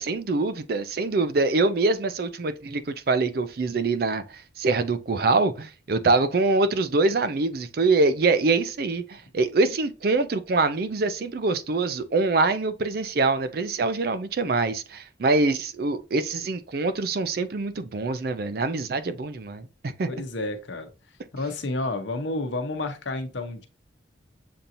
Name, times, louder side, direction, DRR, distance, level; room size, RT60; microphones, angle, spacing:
voice 1, 0.0-19.7 20.0-20.1, right 3 dB, 50° right, 0.4 m, -24 dB
voice 2, 20.1-20.9 21.3-23.7, left 2 dB, 75° left, 0.8 m, -30 dB
6.9 x 2.8 x 2.5 m
head